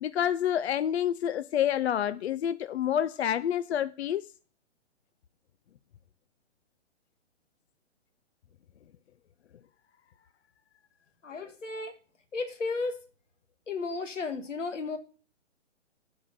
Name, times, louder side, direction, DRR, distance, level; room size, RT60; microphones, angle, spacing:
voice 1, 0.0-4.3, left 10 dB, 65° left, 0.5 m, -28 dB
voice 2, 11.2-11.9 12.3-13.0 13.7-15.0, left 3 dB, 85° left, 1.7 m, -33 dB
8.3 x 4.9 x 7.1 m
hypercardioid pair, 130°, 36 cm